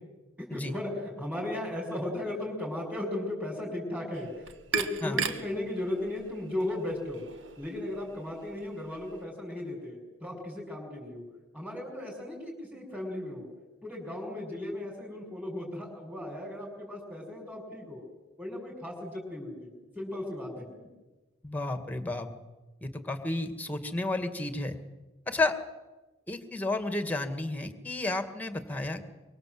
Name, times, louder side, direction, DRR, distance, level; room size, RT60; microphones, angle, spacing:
voice 1, 0.4-7.2 7.6-11.2 11.5-13.4 13.8-18.0 18.4-19.7 19.9-20.9, left 1 dB, 5° right, -4 dB, 6.1 m, -36 dB
sound 1, 4.1-9.2, right 6 dB, 85° right, 2.0 m, -38 dB
voice 2, 21.4-22.3 22.8-24.8 25.3-25.6 26.3-29.0, left 2 dB, 10° left, 8 dB, 2.1 m, -32 dB
25.0 x 24.5 x 8.0 m, 1.2 s
head